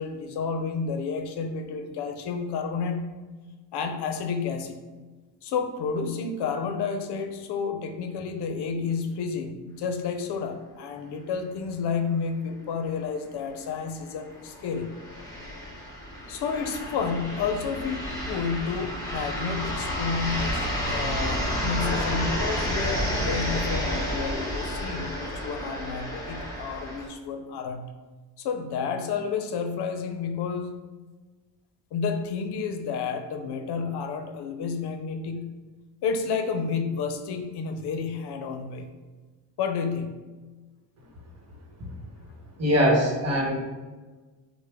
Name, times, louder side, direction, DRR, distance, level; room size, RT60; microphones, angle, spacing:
voice 1, 0.0-3.1 3.7-4.8 5.4-15.0 16.3-27.9 28.4-30.8 31.9-35.6 36.0-38.9 39.6-40.2, left 5 dB, 70° left, 6 dB, 0.6 m, -30 dB
sound 1, 13.0-13.1 13.4-13.5 14.2-27.1, equal, 10° left, 1.2 m, -30 dB
voice 2, 42.6-43.6, equal, 35° right, -1 dB, 1.1 m, -22 dB
6.4 x 2.2 x 3.5 m, 1.3 s
cardioid pair, 130°, 42 cm